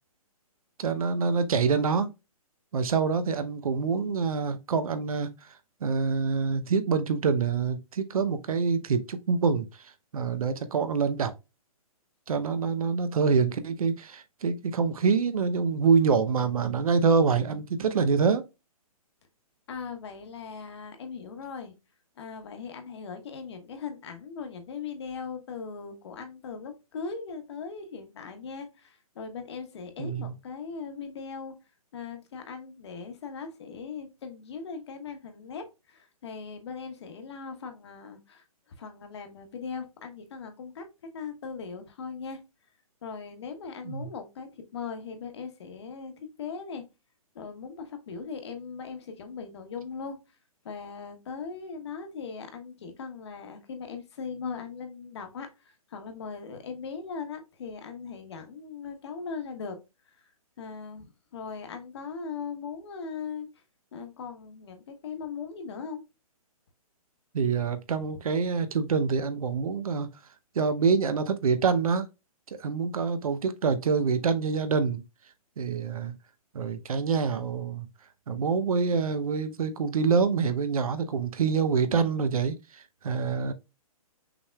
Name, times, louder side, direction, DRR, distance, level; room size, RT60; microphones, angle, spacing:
voice 1, 0.8-2.1 2.7-11.3 12.3-18.4 30.0-30.3 43.8-44.1 67.3-70.1 70.5-72.1 72.6-75.0 75.6-76.1 76.5-77.9 78.3-83.5, right 5 dB, 70° right, 0.8 m, -26 dB
voice 2, 19.7-21.7 22.2-31.5 31.9-38.4 38.8-40.8 41.1-42.4 43.0-46.8 47.3-50.2 50.6-59.8 60.6-61.0 61.3-63.5 63.9-66.0, left 5 dB, 45° left, 1.2 m, -39 dB
6.0 x 3.4 x 2.3 m
hypercardioid pair, 165°, 19 cm